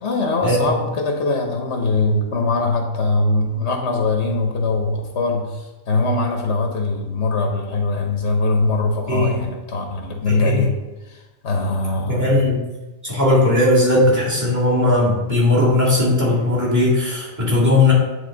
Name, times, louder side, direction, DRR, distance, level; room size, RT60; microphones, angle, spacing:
voice 1, 0.0-10.8 11.1-12.4, left 2 dB, 85° left, 2 dB, 1.2 m, -22 dB
voice 2, 9.1-9.4 10.3-10.7 12.1-12.6 13.0-17.9, left 2 dB, 15° right, -5 dB, 2.2 m, -18 dB
9.5 x 3.5 x 3.8 m, 1.1 s
omnidirectional pair, 1.1 m